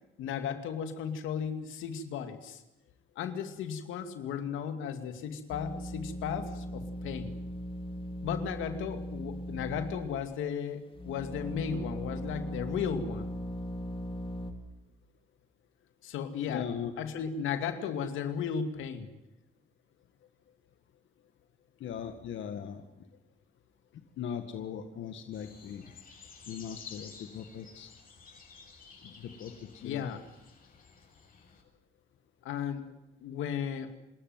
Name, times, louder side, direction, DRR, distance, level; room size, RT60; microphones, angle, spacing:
voice 1, 0.2-2.6 3.2-7.3 8.2-13.3 16.0-16.6 17.0-19.1 29.8-30.2 32.4-32.8 33.2-33.9, left 7 dB, 90° left, 8 dB, 2.5 m, -35 dB
sound 1, 5.5-10.3 10.9-14.5, equal, 25° left, 3.2 m, -39 dB
voice 2, 16.5-16.9 21.8-22.8 24.2-25.9 26.5-27.9 29.0-30.1, left 8 dB, 75° left, 7 dB, 2.0 m, -39 dB
sound 2, 25.3-31.6, left 5 dB, 45° left, 7.3 m, -53 dB
27.0 x 13.5 x 9.3 m, 0.97 s
cardioid pair, 90°, 20 cm